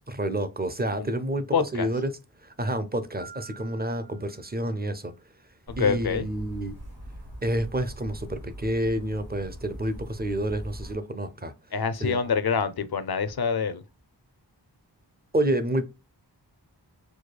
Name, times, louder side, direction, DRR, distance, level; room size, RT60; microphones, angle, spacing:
voice 1, 0.0-2.1 2.4-5.1 5.8-6.7 7.4-11.5 12.0-12.2 15.3-15.9, right 1 dB, 20° right, 0.5 m, -29 dB
voice 2, 1.5-1.9 5.7-6.3 11.7-13.8, left 6 dB, 60° left, 0.5 m, -26 dB
Piano, 3.2-5.1, right 5 dB, 80° right, 0.9 m, -49 dB
sound 1, 5.7-11.0, equal, 60° right, 1.9 m, -41 dB
4.7 x 2.3 x 2.2 m
wide cardioid pair, 40°, 43 cm